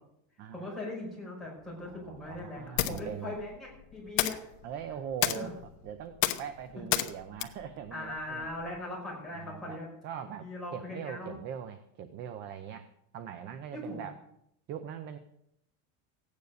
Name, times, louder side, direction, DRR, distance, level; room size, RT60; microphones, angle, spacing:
voice 1, 0.5-4.4 5.3-5.5 7.9-9.9 10.4-11.4 13.7-14.1, left 2 dB, ahead, -6 dB, 5.4 m, -40 dB
sound 1, 1.6-8.8, left 15 dB, 75° left, 1.1 m, -35 dB
voice 2, 1.8-3.4 4.6-8.5 9.3-12.9 13.1-14.1 14.7-15.2, right 8 dB, 25° right, 9 dB, 0.6 m, -41 dB
15.5 x 9.6 x 6.6 m, 0.76 s
cardioid pair, 180°, 40 cm